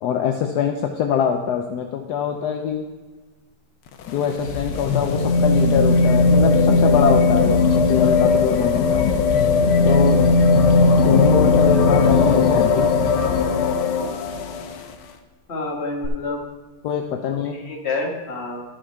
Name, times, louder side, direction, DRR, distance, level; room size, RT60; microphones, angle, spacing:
voice 1, 0.0-2.8 4.1-9.0 9.8-10.2 11.0-12.9 16.8-17.5, left 8 dB, 70° left, 4 dB, 1.0 m, -23 dB
sound 1, 3.9-14.8 16.0-16.1, left 4 dB, 85° left, 1.7 m, -17 dB
voice 2, 15.5-16.4 17.3-18.6, left 3 dB, 35° left, 0 dB, 1.6 m, -28 dB
12.5 x 6.4 x 4.6 m, 1.3 s
omnidirectional pair, 2.3 m